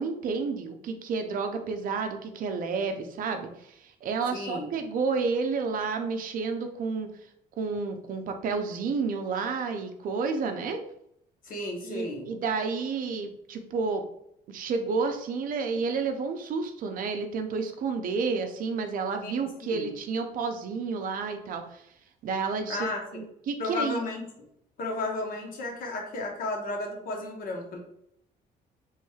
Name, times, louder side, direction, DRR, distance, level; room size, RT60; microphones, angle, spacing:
voice 1, 0.0-7.1 7.6-10.8 11.8-14.0 14.5-21.8 22.2-22.9 23.1-24.0, right 4 dB, 55° right, 6 dB, 0.5 m, -30 dB
voice 2, 4.3-4.7 11.4-12.3 19.2-19.9 22.7-23.0 23.6-24.5 24.8-27.8, left 2 dB, 55° left, 1 dB, 0.9 m, -33 dB
3.1 x 3.0 x 2.3 m, 0.74 s
cardioid pair, 110°, 17 cm